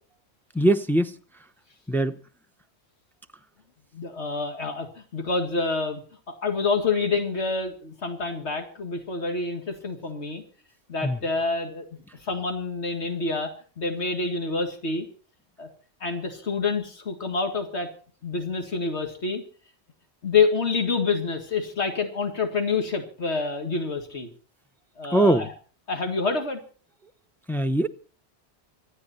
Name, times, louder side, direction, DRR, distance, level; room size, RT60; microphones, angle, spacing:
voice 1, 0.5-1.1 1.9-2.2 11.0-11.2 25.1-25.5 27.5-27.9, right 1 dB, ahead, 0.7 m, -21 dB
voice 2, 3.9-6.0 6.3-10.4 10.9-11.8 12.2-13.5 13.8-15.1 15.6-15.7 16.0-17.9 18.2-19.4 20.2-24.3 25.0-25.5 25.9-26.6, left 4 dB, 80° left, 2.2 m, -27 dB
26.0 x 9.8 x 4.2 m
omnidirectional pair, 1.1 m